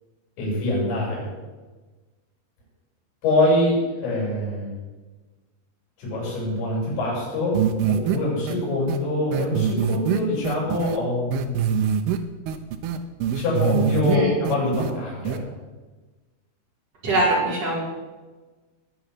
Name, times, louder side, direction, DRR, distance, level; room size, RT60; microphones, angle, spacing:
voice 1, 0.4-1.3 3.2-4.8 6.0-11.5 13.3-15.4, left 1 dB, 80° left, -6 dB, 9.7 m, -24 dB
sound 1, 7.5-8.2 8.5-8.6 8.9-9.0 9.3-11.0 11.3-12.2 12.5-14.2 14.4-14.9 15.2-15.4, right 8 dB, 80° right, 2.3 m, -24 dB
voice 2, 17.0-17.8, right 1 dB, 35° right, -5 dB, 5.7 m, -22 dB
21.0 x 7.0 x 8.1 m, 1.3 s
omnidirectional pair, 5.7 m